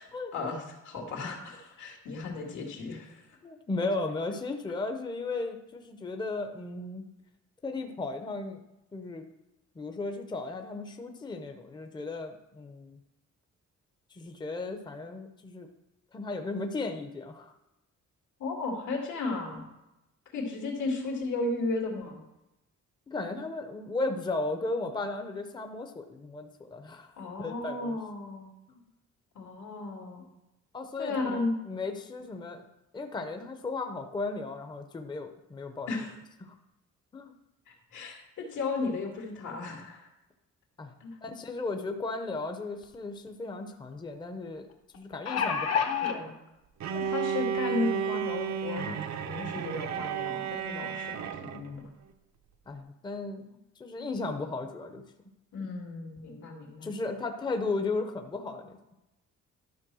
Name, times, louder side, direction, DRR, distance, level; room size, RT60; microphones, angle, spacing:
voice 1, 0.3-3.2 18.4-19.6 20.3-22.2 27.2-28.5 29.3-30.2 31.0-31.6 35.9-36.1 37.7-40.1 41.0-41.1 46.0-46.4 46.9-51.8 55.5-56.9, left 3 dB, 85° left, 0 dB, 2.4 m, -34 dB
voice 2, 3.4-7.0 7.6-8.6 8.9-9.3 9.8-13.0 14.1-15.7 16.1-17.5 23.1-27.1 27.4-28.0 28.7-28.8 30.7-31.4 31.7-32.7 32.9-35.9 36.4-36.5 37.1-37.3 40.8-40.9 41.2-44.7 44.9-46.2 50.8-50.9 52.7-53.5 53.8-55.0 56.8-58.8, left 3 dB, 15° left, 5 dB, 0.6 m, -35 dB
sound 1, 42.8-42.9 43.3-43.4 44.9-46.2 47.1-47.2 47.6-47.7, left 7 dB, 55° left, 0.9 m, -28 dB
Bowed string instrument, 46.8-51.7, right 7 dB, 65° right, 0.7 m, -32 dB
12.0 x 4.3 x 6.1 m, 0.94 s
wide cardioid pair, 170°, 30 cm